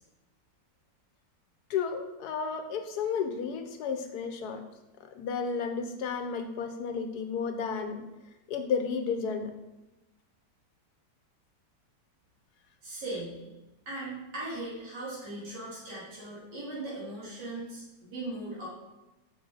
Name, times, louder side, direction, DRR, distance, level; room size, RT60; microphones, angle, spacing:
voice 1, 1.7-4.6 5.1-8.0 8.5-9.5, left 6 dB, 70° left, 7 dB, 1.1 m, -32 dB
voice 2, 12.8-13.4 13.9-18.7, right 2 dB, 70° right, -7 dB, 3.0 m, -38 dB
6.8 x 5.3 x 3.9 m, 1.0 s
omnidirectional pair, 1.9 m